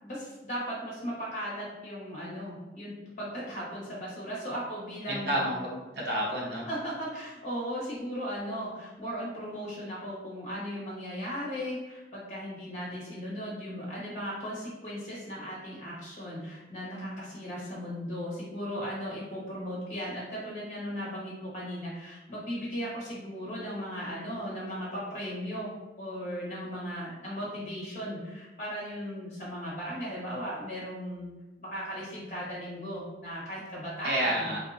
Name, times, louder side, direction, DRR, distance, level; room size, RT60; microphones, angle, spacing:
voice 1, 0.0-5.4 6.7-25.7 26.0-31.3 31.6-34.5, equal, 40° left, -6 dB, 1.3 m, -37 dB
voice 2, 5.1-6.6 34.0-34.6, right 1 dB, 70° right, -4 dB, 1.0 m, -30 dB
3.3 x 2.7 x 2.6 m, 1.1 s
head